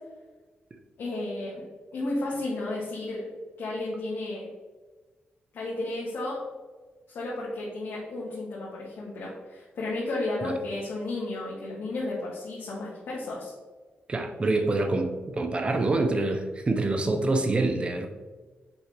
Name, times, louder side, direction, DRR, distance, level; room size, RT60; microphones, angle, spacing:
voice 1, 1.0-1.7 1.9-3.3 3.6-4.5 5.5-6.4 7.1-13.5, left 2 dB, 70° left, -6 dB, 1.7 m, -33 dB
voice 2, 14.1-18.1, right 2 dB, 30° right, 6 dB, 0.7 m, -26 dB
6.3 x 5.4 x 3.3 m, 1.3 s
wide cardioid pair, 125°, 4 cm